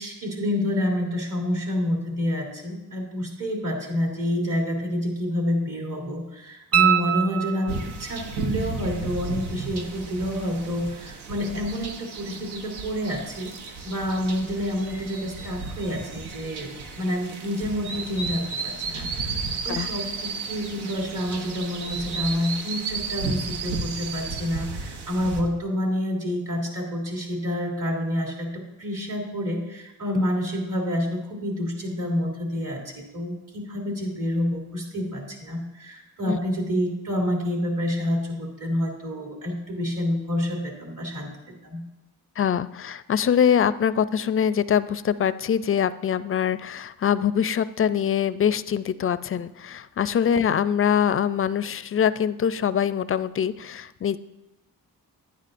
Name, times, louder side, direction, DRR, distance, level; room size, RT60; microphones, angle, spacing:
voice 1, 0.0-13.5 13.8-19.4 19.6-41.3 41.6-41.8, left 1 dB, 55° right, -1 dB, 3.0 m, -28 dB
sound 1, 6.7-8.1 10.8-10.9, right 10 dB, 40° right, 0.6 m, -23 dB
sound 2, 7.7-25.4, right 4 dB, 90° right, 1.0 m, -34 dB
voice 2, 42.4-54.2, left 8 dB, 35° left, 15 dB, 0.4 m, -23 dB
10.5 x 9.8 x 2.5 m, 0.96 s
cardioid pair, 55°, 38 cm